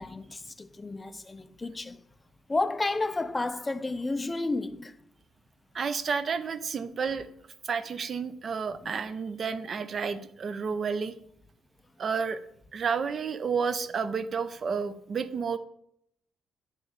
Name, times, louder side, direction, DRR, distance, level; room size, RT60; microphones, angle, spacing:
voice 1, 0.0-2.0 2.5-5.0 8.8-8.9, left 2 dB, 15° left, 0.4 m, -31 dB
voice 2, 5.7-7.3 7.6-11.1 12.0-12.4 12.7-15.6, right 5 dB, 40° right, 0.5 m, -31 dB
9.1 x 3.1 x 6.5 m
cardioid pair, 150°, 0 cm